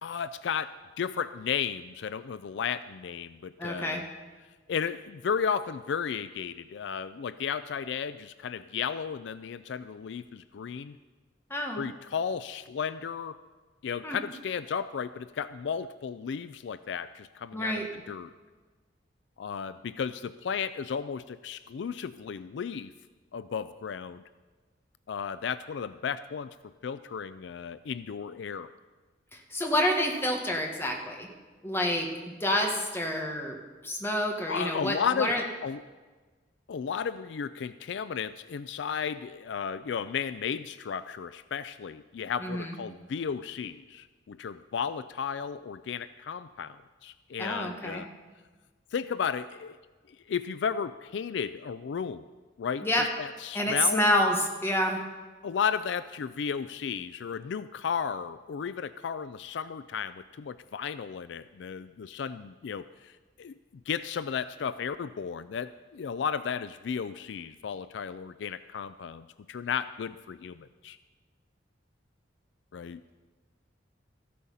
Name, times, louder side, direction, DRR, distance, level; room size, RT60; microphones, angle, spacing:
voice 1, 0.0-0.7 1.0-4.0 4.7-11.0 11.8-13.4 13.8-18.3 19.4-22.9 23.3-24.2 25.1-26.5 26.8-28.7 34.5-35.8 36.7-48.1 48.9-49.7 50.1-52.2 52.6-54.1 55.4-63.5 63.9-71.0 72.7-73.1, left 7 dB, 70° left, 14 dB, 0.4 m, -34 dB
voice 2, 3.6-4.0 11.5-11.8 14.0-14.2 17.5-17.9 29.5-31.3 31.6-32.1 32.4-33.6 33.8-35.4 42.4-42.8 47.4-48.0 52.8-53.1 53.5-55.0, left 1 dB, 15° left, 1 dB, 1.5 m, -28 dB
14.5 x 8.5 x 5.5 m, 1.3 s
head